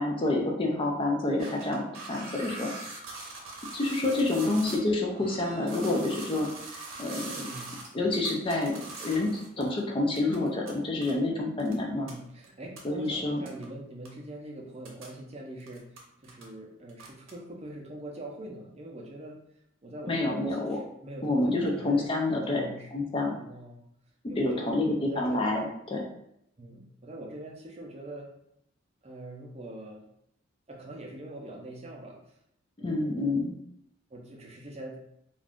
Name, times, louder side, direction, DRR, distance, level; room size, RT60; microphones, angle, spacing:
voice 1, 0.0-2.7 3.7-6.5 6.7-7.4 7.9-12.1 12.8-13.4 20.1-20.8 21.2-23.3 24.4-25.6 25.9-26.0 32.8-33.5, left 2 dB, 25° left, 0 dB, 0.4 m, -28 dB
sound 1, 1.4-4.8 5.1-9.8 10.2-10.7 11.0-11.1 11.6-11.7 12.1-12.2 12.4-12.5 12.8-12.9 13.5-13.7 14.1-14.2 14.7-15.2 15.6-16.5 16.9-17.3, right 3 dB, 75° right, 0.7 m, -42 dB
voice 2, 7.3-7.8 11.9-19.4 19.8-22.1 22.4-22.9 23.3-23.9 24.3-25.4 26.6-28.3 29.0-30.0 30.7-32.4 32.8-33.2 34.1-35.0, right 1 dB, 30° right, 0 dB, 0.5 m, -43 dB
2.5 x 2.3 x 3.4 m, 0.76 s
head